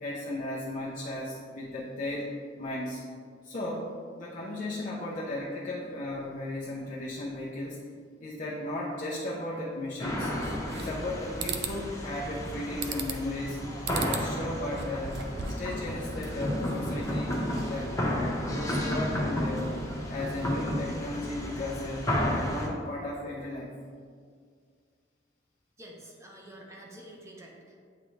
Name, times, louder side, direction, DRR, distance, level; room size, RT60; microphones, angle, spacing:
voice 1, 0.0-3.0 3.4-7.8 8.2-10.3 10.7-13.6 13.9-19.8 20.1-22.2 22.4-23.7, left 1 dB, 45° left, -6 dB, 0.7 m, -35 dB
sound 1, 10.0-22.7, left 1 dB, 20° left, 1.0 m, -32 dB
sound 2, 10.4-11.1 11.4-11.8 12.8-13.3 13.8-14.3 14.7-15.7, right 6 dB, 65° right, 0.5 m, -36 dB
voice 2, 25.8-27.8, right 1 dB, 15° right, -1 dB, 0.9 m, -48 dB
8.9 x 3.7 x 3.2 m, 2.1 s
head